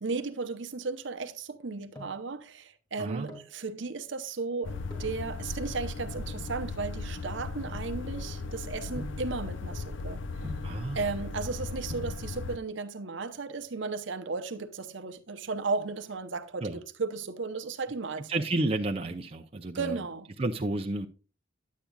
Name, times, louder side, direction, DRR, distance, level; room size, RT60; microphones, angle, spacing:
voice 1, 0.0-10.5 10.9-18.3 19.7-20.3, right 4 dB, 65° right, 0.7 m, -35 dB
sound 1, 1.5-2.3 3.1-3.6 4.8-5.2 5.9-8.3 9.0-9.3 10.4-10.8 11.6-11.7 11.9-12.2 13.4-13.9 14.2-14.3 14.5-14.7 15.0-15.4 15.7-16.8 17.2-17.6 18.0-19.2 19.4-19.5, equal, 20° left, 2.1 m, -47 dB
sound 2, 4.6-12.6, left 3 dB, 65° left, 0.5 m, -37 dB
voice 2, 10.6-11.0 16.6-16.8 18.3-20.0 20.4-21.1, right 2 dB, 30° right, 0.5 m, -31 dB
10.0 x 8.3 x 2.3 m
head